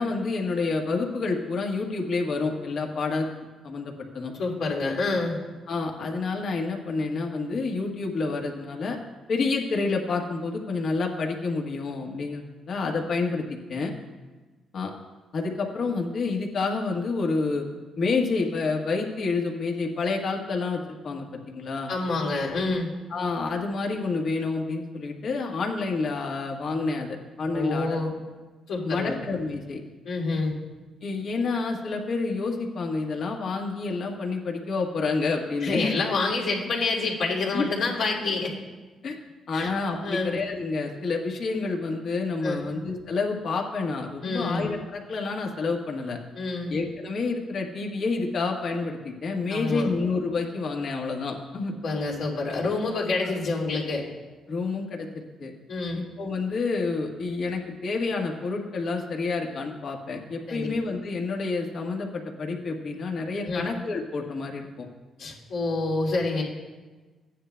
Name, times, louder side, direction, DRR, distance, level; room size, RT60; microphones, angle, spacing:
voice 1, 0.0-3.3 3.6-4.3 5.7-9.0 9.3-13.4 13.7-13.9 14.7-14.9 15.3-17.6 18.0-21.9 23.1-28.0 28.8-29.8 31.0-35.9 37.5-37.7 39.0-39.2 39.5-46.2 46.7-51.7 53.2-53.3 54.5-55.5 55.9-64.9, left 3 dB, 60° left, 1 dB, 1.4 m, -28 dB
voice 2, 4.3-5.4 21.9-22.9 27.5-28.1 28.7-29.2 30.0-30.5 35.6-38.5 39.5-39.7 40.0-40.3 42.4-42.7 44.2-44.7 46.3-46.7 49.5-49.9 51.8-54.0 55.7-56.0 60.5-60.7 63.3-63.6 65.2-66.4, left 3 dB, 80° left, -3 dB, 2.6 m, -27 dB
15.0 x 10.0 x 2.2 m, 1.3 s
cardioid pair, 90°, 0 cm